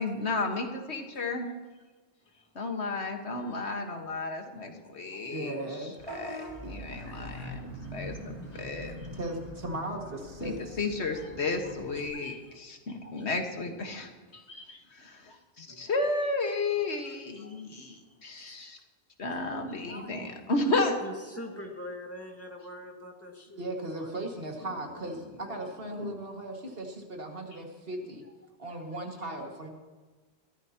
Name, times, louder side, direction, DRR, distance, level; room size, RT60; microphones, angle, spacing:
voice 1, 0.0-1.5 2.6-5.5 5.8-8.9 10.4-18.8 19.2-20.9 26.0-26.1, left 3 dB, 85° left, 4 dB, 1.9 m, -33 dB
voice 2, 3.4-3.8 4.1-4.2 4.7-5.3 6.7-8.2 8.8-8.9 10.0-10.1 10.4-10.7 11.1-11.2 11.6-11.7 12.1-12.6 13.0-13.1 15.7-16.0 17.0-17.7 18.0-18.2 18.5-18.7 19.9-20.5 20.8-24.1 28.7-28.9 29.6-29.7, left 1 dB, 15° left, 1 dB, 1.9 m, -46 dB
voice 3, 5.3-5.9 9.1-10.8 12.0-12.3 17.5-17.6 23.6-28.2 28.6-29.7, right 1 dB, 60° right, 1 dB, 2.3 m, -37 dB
Vehicle horn car horn honking / Bus, 6.0-12.1, equal, 25° right, 5.2 m, -43 dB
21.5 x 14.5 x 2.9 m, 1.4 s
omnidirectional pair, 1.1 m